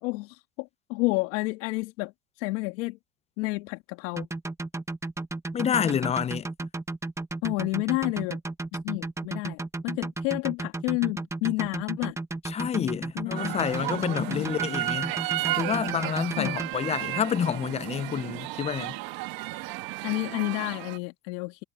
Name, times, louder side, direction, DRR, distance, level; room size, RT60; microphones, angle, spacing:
voice 1, 0.0-2.1 2.4-3.0 3.4-4.3 7.4-8.4 8.8-12.2 13.1-13.6 13.9-14.5 16.4-16.7 20.0-21.6, left 24 dB, 75° left, 1.7 m, -30 dB
sound 1, 4.2-16.7, right 2 dB, 5° right, 1.2 m, -33 dB
voice 2, 5.5-6.5 12.4-15.1 15.6-19.0, left 8 dB, 15° left, 0.4 m, -28 dB
sound 2, 13.4-21.0, right 18 dB, 60° right, 1.5 m, -33 dB
supercardioid pair, 110°, 40 cm